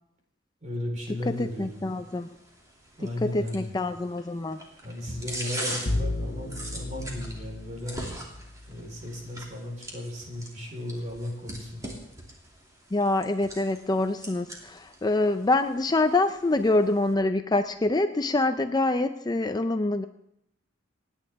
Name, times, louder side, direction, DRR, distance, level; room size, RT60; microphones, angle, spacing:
voice 1, 0.6-1.9 3.0-3.8 4.8-8.0 8.7-11.8, left 1 dB, 40° right, 1 dB, 4.2 m, -35 dB
sound 1, 1.2-17.1, right 1 dB, 20° right, 2.7 m, -42 dB
voice 2, 1.3-2.3 3.2-4.6 12.9-20.0, left 2 dB, 20° left, 8 dB, 0.5 m, -25 dB
Bowed string instrument, 5.9-8.9, left 1 dB, 60° left, 1.2 m, -33 dB
28.0 x 9.9 x 3.6 m, 0.78 s
head